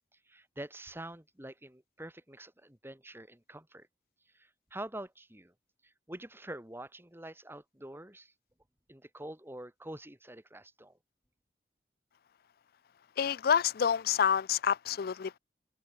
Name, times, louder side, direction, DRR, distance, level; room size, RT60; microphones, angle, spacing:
voice 1, 0.3-3.9 4.3-5.5 5.8-8.3 8.9-11.0, right 1 dB, 15° right, 3.5 m, -46 dB
voice 2, 13.2-15.4, left 7 dB, 60° left, 0.4 m, -28 dB
head